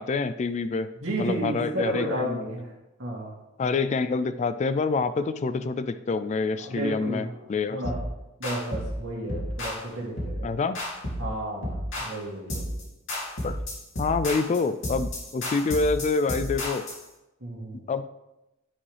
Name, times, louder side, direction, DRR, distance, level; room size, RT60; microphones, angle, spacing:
voice 1, 0.0-0.9 1.2-2.4 3.6-7.8 10.4-10.8 13.4-13.6 14.0-16.8 17.9-18.1, left 4 dB, 35° left, 12 dB, 0.3 m, -27 dB
voice 2, 1.0-2.7 3.0-3.4 6.6-7.3 7.7-8.0 8.4-10.5 11.2-12.7 17.4-17.8, right 1 dB, 70° right, -4 dB, 2.5 m, -32 dB
sound 1, 7.8-8.1 8.4-8.9 9.3-9.8 10.2-10.4 10.7-11.3 11.6-12.2 12.5-12.8 13.1-17.0, left 1 dB, 65° left, 2.9 m, -32 dB
9.9 x 5.4 x 3.3 m, 0.95 s
head